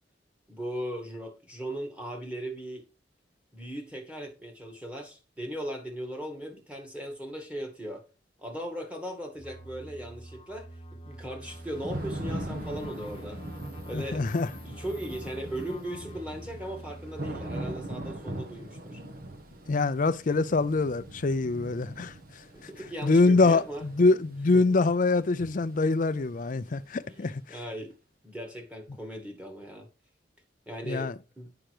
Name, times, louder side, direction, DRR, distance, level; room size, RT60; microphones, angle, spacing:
voice 1, 0.5-2.8 3.5-8.0 8.4-13.4 13.9-14.3 14.6-19.0 22.5-23.9 24.5-24.8 27.1-27.9 28.2-29.9 30.7-31.5, right 1 dB, 5° right, 2.2 m, -38 dB
sound 1, 9.3-17.7, equal, 30° left, 1.1 m, -46 dB
Thunder / Rain, 11.4-27.2, right 1 dB, 55° right, 1.5 m, -41 dB
voice 2, 13.9-14.5 19.7-22.1 23.0-27.4 30.9-31.1, left 3 dB, 45° left, 0.5 m, -24 dB
8.9 x 5.8 x 4.9 m
head